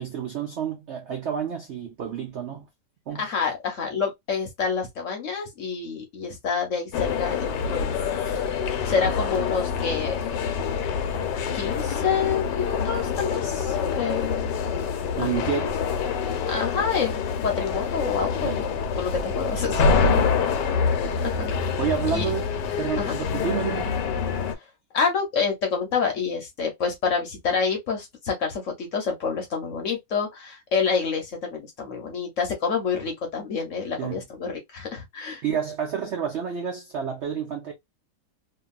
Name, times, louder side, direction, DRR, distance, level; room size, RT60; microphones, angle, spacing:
voice 1, 0.0-2.7 3.1-3.3 15.2-15.8 18.4-18.6 20.0-20.4 21.8-22.5 22.8-24.0 34.0-34.2 35.4-37.7, right 8 dB, 80° right, 0.6 m, -29 dB
voice 2, 3.2-8.4 8.8-10.2 11.5-14.5 15.2-15.3 15.6-15.7 16.5-18.6 19.0-19.9 21.2-21.5 22.1-22.3 23.0-23.1 24.9-35.4, left 5 dB, 55° left, 1.0 m, -28 dB
sound 1, 6.9-24.5, left 6 dB, 80° left, 1.2 m, -26 dB
2.8 x 2.6 x 2.3 m
omnidirectional pair, 1.9 m